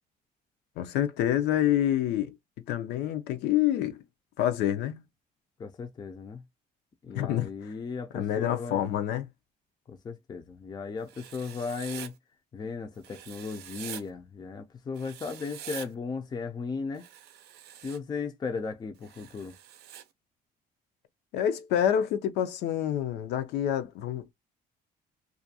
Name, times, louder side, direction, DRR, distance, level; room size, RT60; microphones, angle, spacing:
voice 1, 0.8-2.3 2.7-4.0 4.4-5.0 7.1-7.7 8.1-9.3 21.3-24.3, left 11 dB, 85° left, 0.5 m, -27 dB
voice 2, 5.6-6.4 7.0-8.8 9.9-12.1 12.5-17.1 17.8-19.6, left 4 dB, 25° left, 0.4 m, -36 dB
Writing, 11.1-12.1 13.0-14.0 15.0-15.9 16.9-18.0 19.0-20.0, right 10 dB, 75° right, 0.5 m, -45 dB
2.4 x 2.2 x 2.6 m
cardioid pair, 110°, 17 cm